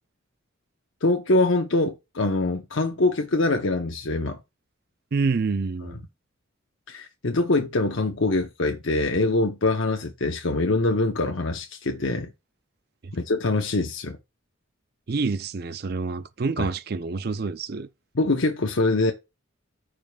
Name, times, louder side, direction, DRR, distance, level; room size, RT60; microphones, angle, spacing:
voice 1, 1.0-4.4 5.8-5.9 6.9-12.3 13.1-14.2 16.6-16.7 18.1-19.1, left 2 dB, 70° left, 0.9 m, -24 dB
voice 2, 5.1-6.0 13.0-13.1 15.1-17.9, right 4 dB, 50° right, 0.5 m, -27 dB
14.0 x 5.0 x 2.3 m
head